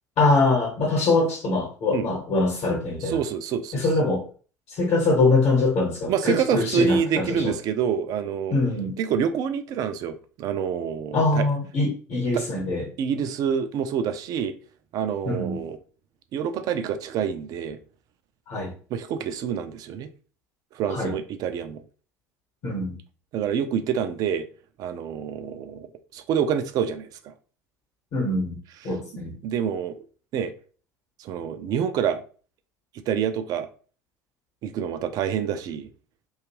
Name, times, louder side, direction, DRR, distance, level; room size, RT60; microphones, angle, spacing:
voice 1, 0.2-3.2 3.7-4.2 4.7-7.5 8.5-9.0 11.1-12.9 15.2-15.6 18.5-18.7 20.9-21.1 22.6-23.0 28.1-28.6 28.8-29.4, left 2 dB, 50° left, 1.0 m, -23 dB
voice 2, 3.1-3.9 6.1-8.6 9.0-11.5 12.3-12.4 13.0-14.5 14.9-15.8 16.3-17.8 18.9-20.1 20.7-21.8 23.3-24.4 24.8-25.9 26.1-27.3 29.4-30.0 30.3-30.5 31.2-32.2 33.1-33.7 34.6-35.9, right 7 dB, 50° right, 0.4 m, -27 dB
2.8 x 2.3 x 2.9 m
figure-of-eight pair, 65°, 9 cm